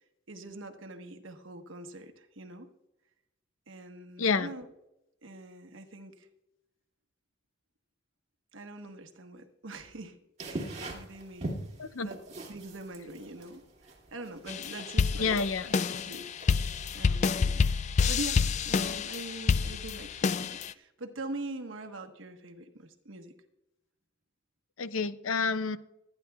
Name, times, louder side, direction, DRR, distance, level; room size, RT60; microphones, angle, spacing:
voice 1, 0.3-2.7 3.7-4.7 5.2-6.3 8.5-10.2 10.4-11.5 12.0-12.2 12.5-15.3 16.0-16.4 16.9-17.7 18.1-23.3, right 2 dB, 70° right, 6 dB, 1.2 m, -43 dB
sound 1, 10.4-17.2, right 2 dB, 35° right, 2.3 m, -42 dB
voice 2, 11.8-12.1 15.2-15.7 24.8-25.8, left 5 dB, 85° left, 13 dB, 0.6 m, -29 dB
sound 2, 14.5-20.7, left 5 dB, 35° left, 0.3 m, -28 dB
25.0 x 10.0 x 2.3 m, 0.89 s
head